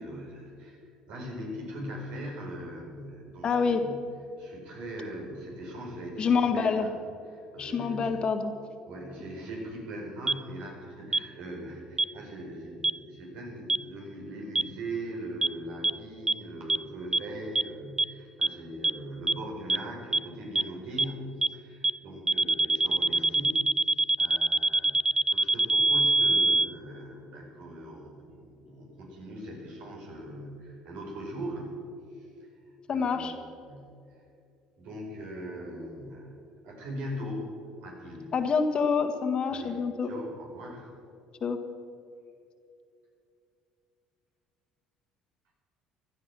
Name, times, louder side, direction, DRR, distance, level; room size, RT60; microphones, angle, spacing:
voice 1, 0.0-4.1 4.4-6.9 7.2-8.2 8.9-23.9 24.2-31.7 32.1-33.3 33.6-34.2 34.8-36.4 36.6-37.5 37.8-38.3 39.5-39.8 40.0-40.9, right 1 dB, 70° right, 0 dB, 5.0 m, -40 dB
voice 2, 3.4-3.8 6.2-6.8 7.6-8.5 32.9-33.3 38.3-40.1 41.4-41.6, left 5 dB, 45° left, 6 dB, 1.7 m, -26 dB
sound 1, 10.3-10.4 11.1-11.2 12.0-12.1 12.8-12.9 13.7-13.8 14.6-14.7 15.4-15.5 15.8-15.9 16.3-16.4 16.7-16.8 17.1-17.2 17.6-17.7 18.0-18.1 18.4-18.5 18.8-18.9 19.3-19.4 19.7-19.8 20.1-20.2 20.6-20.7 21.0-21.1 21.4-21.5 21.8-21.9 22.3-26.7, right 3 dB, 20° right, 0.3 m, -23 dB
16.0 x 12.0 x 6.1 m, 2.5 s
supercardioid pair, 85°, 2 cm